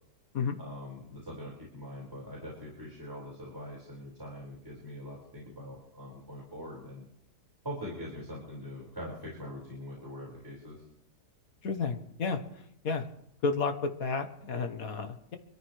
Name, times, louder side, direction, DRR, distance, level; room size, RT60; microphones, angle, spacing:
voice 1, 0.6-7.1 7.6-10.8, equal, 10° right, -5 dB, 4.7 m, -43 dB
voice 2, 11.6-12.4 12.8-13.0 13.4-15.4, left 4 dB, 60° left, 7 dB, 1.5 m, -31 dB
24.0 x 14.0 x 3.2 m, 0.76 s
omnidirectional pair, 1.8 m